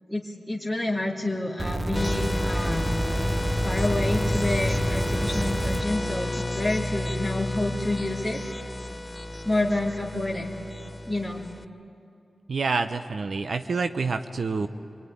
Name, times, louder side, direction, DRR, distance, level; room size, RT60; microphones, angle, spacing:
voice 1, 0.1-2.9 3.6-8.4 9.4-10.5 11.1-11.4, left 2 dB, 10° right, -3 dB, 2.8 m, -28 dB
sound 1, 1.6-5.8 6.8-6.9, right 1 dB, 30° right, 0.9 m, -29 dB
sound 2, 2.0-11.6, left 1 dB, 20° left, 0.8 m, -30 dB
voice 2, 12.5-14.7, right 4 dB, 70° right, 9 dB, 0.8 m, -27 dB
26.0 x 23.0 x 9.9 m, 2.7 s
wide cardioid pair, 85°, 0 cm